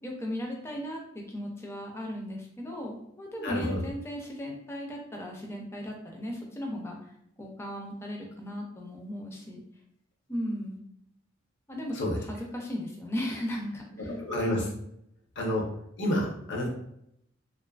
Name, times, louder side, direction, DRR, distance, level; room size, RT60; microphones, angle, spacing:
voice 1, 0.0-7.1 7.4-9.6 10.3-10.8 11.7-14.1 14.4-14.7, equal, 15° left, 0 dB, 0.4 m, -36 dB
voice 2, 3.4-3.8 11.9-12.2 14.2-14.6 15.4-15.6 16.0-16.7, left 1 dB, 60° left, -1 dB, 0.6 m, -29 dB
2.5 x 2.4 x 2.2 m, 0.75 s
head